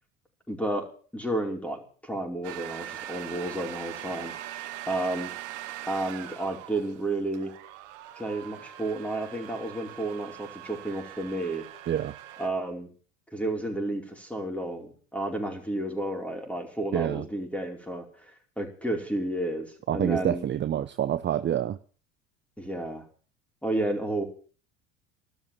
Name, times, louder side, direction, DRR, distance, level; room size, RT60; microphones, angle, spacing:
voice 1, 0.5-0.9 1.1-4.3 4.9-5.3 5.9-7.5 8.2-11.7 12.4-12.9 13.3-20.4 22.6-23.0 23.6-24.2, right 1 dB, 5° left, 2 dB, 4.9 m, -31 dB
sound 1, 2.4-12.5, right 13 dB, 65° right, 1.8 m, -42 dB
voice 2, 16.9-17.2 19.9-21.8, right 10 dB, 30° right, 11 dB, 0.8 m, -27 dB
13.5 x 12.5 x 7.4 m, 0.42 s
hypercardioid pair, 70°, 38 cm